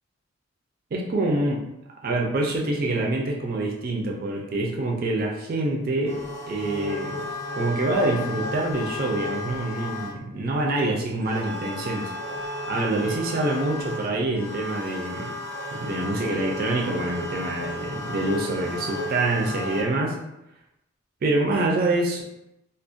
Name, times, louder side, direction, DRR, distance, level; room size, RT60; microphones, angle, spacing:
voice 1, 0.9-1.6 2.0-6.2 6.5-7.2 7.5-12.1 12.7-15.3 15.8-20.2 21.2-22.2, right 2 dB, 45° right, 0 dB, 0.4 m, -26 dB
sound 1, 6.1-10.3 11.2-19.8, left 2 dB, 10° left, 0.5 m, -33 dB
2.4 x 2.1 x 2.5 m, 0.87 s
head